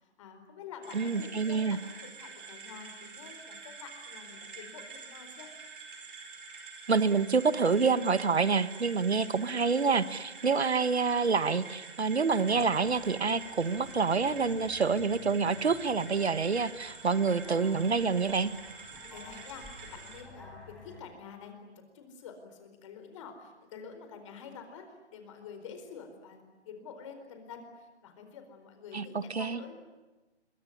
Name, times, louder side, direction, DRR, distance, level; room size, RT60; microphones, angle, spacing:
voice 1, 0.0-5.5 18.9-29.8, left 6 dB, 25° left, 6 dB, 4.4 m, -48 dB
sound 1, 0.8-20.2, right 4 dB, 45° right, 5.4 m, -47 dB
voice 2, 0.9-1.8 6.9-18.5 28.9-29.6, right 5 dB, 70° right, 14 dB, 1.7 m, -27 dB
sound 2, 12.4-21.0, left 1 dB, ahead, 5.4 m, -53 dB
25.5 x 23.0 x 9.9 m, 1.1 s
figure-of-eight pair, 150°, 34 cm